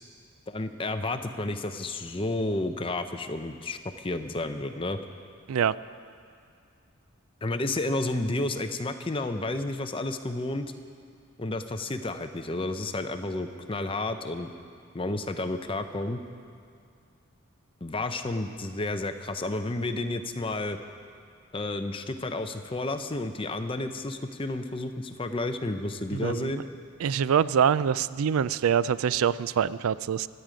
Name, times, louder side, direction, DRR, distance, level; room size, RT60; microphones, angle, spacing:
voice 1, 0.5-5.0 7.4-10.7 11.4-14.5 14.9-16.2 17.8-20.8 21.5-26.6, left 2 dB, 25° left, 8 dB, 0.6 m, -31 dB
voice 2, 26.1-26.6 27.0-30.3, right 8 dB, 85° right, 17 dB, 0.4 m, -25 dB
24.5 x 9.1 x 5.1 m, 2.3 s
head